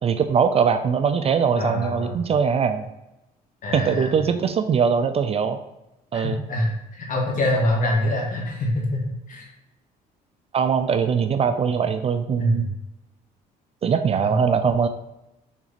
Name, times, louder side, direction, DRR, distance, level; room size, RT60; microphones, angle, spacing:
voice 1, 0.0-2.9 3.7-5.6 6.1-6.4 10.5-12.7 13.8-14.9, right 6 dB, 35° right, 9 dB, 0.4 m, -21 dB
voice 2, 1.6-2.2 3.6-4.1 6.1-9.5 12.4-12.6 14.2-14.3, left 1 dB, 50° left, -1 dB, 2.0 m, -25 dB
6.0 x 3.9 x 4.1 m, 0.90 s
cardioid pair, 110°, 17 cm